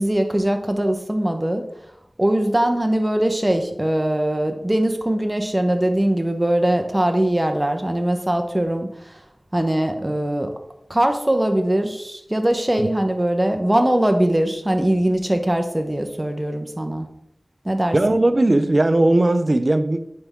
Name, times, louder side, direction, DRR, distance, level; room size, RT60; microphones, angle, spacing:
voice 1, 0.0-1.6 2.2-9.2 9.5-10.5 10.9-17.1 17.6-18.2, right 1 dB, 25° right, 1.0 m, -21 dB
voice 2, 17.9-20.0, right 2 dB, 55° right, 0.5 m, -18 dB
9.5 x 3.6 x 3.6 m
wide cardioid pair, 40°, 0 cm